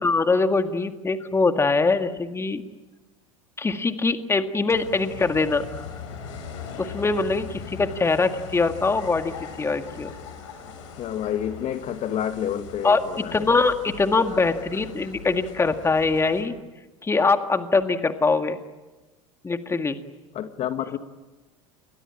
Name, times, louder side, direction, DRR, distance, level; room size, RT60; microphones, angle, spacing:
voice 1, 0.0-2.6 3.6-5.8 6.8-10.1 12.8-13.0 13.3-16.5 17.0-18.6 19.4-20.0, left 3 dB, 15° left, 1.9 m, -23 dB
sound 1, 4.7-16.4, left 6 dB, 65° left, 6.7 m, -40 dB
voice 2, 11.0-13.5 20.3-21.0, left 10 dB, 40° left, 1.8 m, -29 dB
29.0 x 22.5 x 8.8 m
hypercardioid pair, 80°, 17 cm